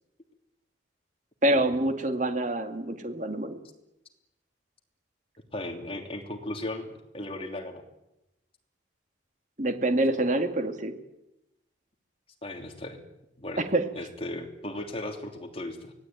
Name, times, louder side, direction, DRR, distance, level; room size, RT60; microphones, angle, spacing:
voice 1, 1.4-3.6 9.6-10.9 13.6-13.8, right 1 dB, 40° right, 6 dB, 2.2 m, -26 dB
voice 2, 5.5-7.8 12.4-13.0 13.4-13.6 13.9-15.9, left 1 dB, 30° left, 3 dB, 3.0 m, -36 dB
24.0 x 18.0 x 9.3 m, 0.91 s
head